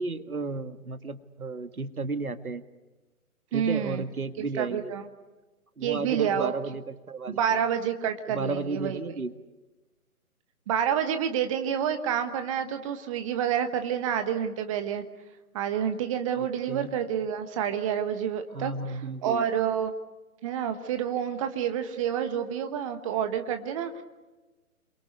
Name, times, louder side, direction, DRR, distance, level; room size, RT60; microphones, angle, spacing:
voice 1, 0.0-2.6 3.5-4.9 5.8-7.4 8.3-9.4 16.3-16.9 18.5-19.5, right 3 dB, 75° right, 11 dB, 1.9 m, -33 dB
voice 2, 3.5-4.0 4.5-5.0 5.8-6.5 7.3-9.1 10.7-15.0 15.5-19.9 20.4-24.0, right 8 dB, 20° right, 8 dB, 1.2 m, -28 dB
28.5 x 23.0 x 8.2 m, 1.2 s
figure-of-eight pair, 135°, 44 cm